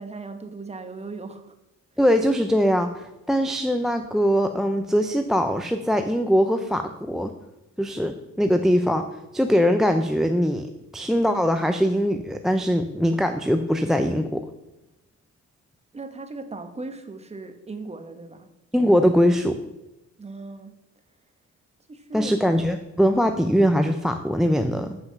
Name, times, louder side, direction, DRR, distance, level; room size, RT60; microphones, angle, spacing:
voice 1, 0.0-1.5 15.9-18.5 20.2-20.8 21.9-22.3, right 3 dB, 20° right, 8 dB, 1.0 m, -37 dB
voice 2, 2.0-7.3 7.8-9.0 9.3-10.7 10.9-14.4 18.7-19.6 22.1-25.0, equal, ahead, 7 dB, 0.5 m, -21 dB
7.9 x 5.7 x 5.7 m, 0.91 s
cardioid pair, 90°, 30 cm